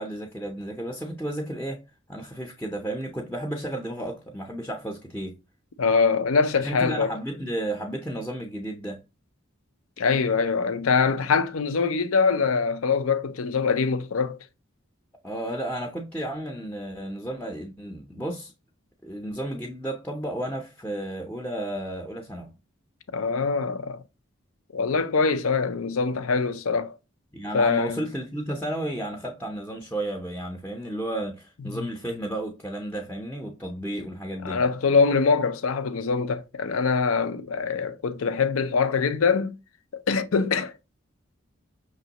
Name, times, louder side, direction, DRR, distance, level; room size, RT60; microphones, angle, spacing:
voice 1, 0.0-1.8 2.1-5.4 6.6-9.0 15.2-18.5 19.0-22.5 27.3-34.6, right 1 dB, 10° left, 0.5 m, -32 dB
voice 2, 5.8-7.1 10.0-14.4 23.1-24.0 24.7-27.0 27.5-28.0 31.6-31.9 34.4-39.6 39.9-40.7, left 5 dB, 90° left, 0.5 m, -23 dB
5.9 x 3.0 x 2.8 m
head